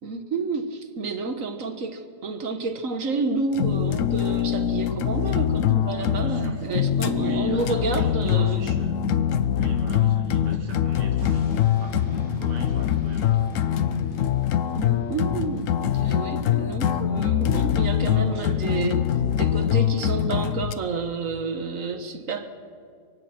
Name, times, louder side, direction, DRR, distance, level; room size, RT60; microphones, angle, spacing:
voice 1, 0.0-8.6 14.7-19.0 19.4-22.5, right 4 dB, 55° right, 8 dB, 1.7 m, -30 dB
sound 1, 3.5-20.7, left 10 dB, 60° left, 1.0 m, -24 dB
voice 2, 6.0-6.7 7.1-9.0 9.5-11.5 11.8-13.5 17.6-18.6, right 4 dB, 85° right, 3 dB, 2.1 m, -40 dB
Bass guitar, 8.6-14.8, left 4 dB, 85° left, 2.0 m, -39 dB
sound 2, 11.2-17.0, right 3 dB, 35° right, 2.3 m, -48 dB
24.0 x 23.0 x 6.0 m, 2.2 s
omnidirectional pair, 1.8 m